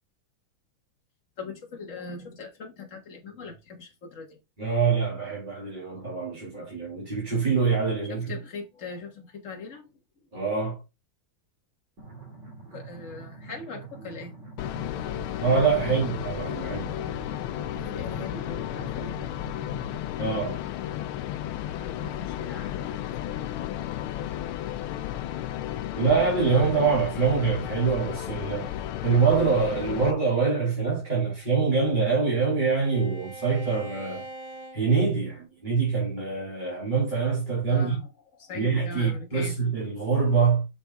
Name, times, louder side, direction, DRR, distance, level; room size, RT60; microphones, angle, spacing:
voice 1, 1.4-4.4 8.0-9.9 12.7-14.4 15.8-16.1 16.6-16.7 17.7-19.2 21.8-23.5 37.7-38.1 38.4-39.6, left 4 dB, 40° left, 1.7 m, -40 dB
voice 2, 4.6-8.4 10.3-10.8 15.4-16.9 20.2-20.6 26.0-28.7 29.0-34.2 34.7-38.0 38.5-40.7, right 5 dB, 20° right, 2.6 m, -25 dB
sound 1, 12.0-20.0, right 4 dB, 50° right, 3.2 m, -45 dB
sound 2, 14.6-30.1, left 12 dB, 80° left, 1.4 m, -33 dB
Bowed string instrument, 31.3-35.7, right 2 dB, 85° right, 2.2 m, -45 dB
6.3 x 6.0 x 3.5 m
omnidirectional pair, 2.3 m